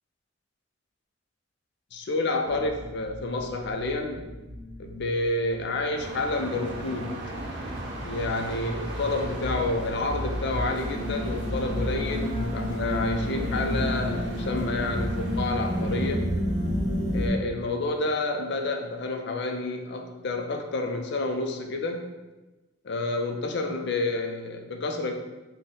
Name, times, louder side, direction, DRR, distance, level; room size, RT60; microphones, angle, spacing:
voice 1, 1.9-4.3 4.8-7.2 8.0-16.3 17.1-22.1 22.8-25.1, left 2 dB, 60° left, 4 dB, 0.5 m, -29 dB
sound 1, 2.4-17.3, equal, 20° right, 1.1 m, -31 dB
sound 2, 6.0-16.1, right 1 dB, 60° right, 0.7 m, -39 dB
4.0 x 2.2 x 3.6 m, 1.1 s
head